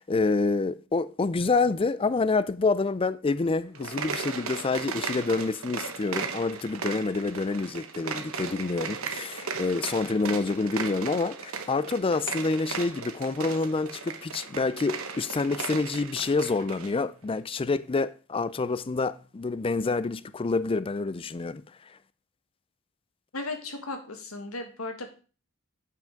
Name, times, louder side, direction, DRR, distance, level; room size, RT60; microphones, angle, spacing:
voice 1, 0.0-21.6, left 3 dB, 25° left, 0.4 m, -27 dB
sound 1, 3.7-16.9, right 5 dB, 85° right, 1.2 m, -36 dB
voice 2, 23.3-25.1, left 2 dB, 90° left, 1.7 m, -36 dB
7.6 x 6.0 x 5.1 m
head